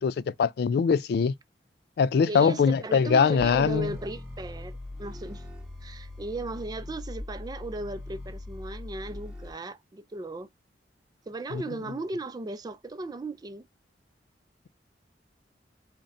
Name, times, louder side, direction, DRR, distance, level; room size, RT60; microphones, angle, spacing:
voice 1, 0.0-1.3 2.0-4.0 11.5-11.6, left 6 dB, 65° left, 0.3 m, -23 dB
voice 2, 2.3-5.4 5.8-10.5 11.3-13.7, right 2 dB, 25° right, 0.4 m, -36 dB
Bass growl, 3.4-9.5, left 2 dB, 5° right, 0.8 m, -41 dB
3.8 x 2.1 x 3.9 m
head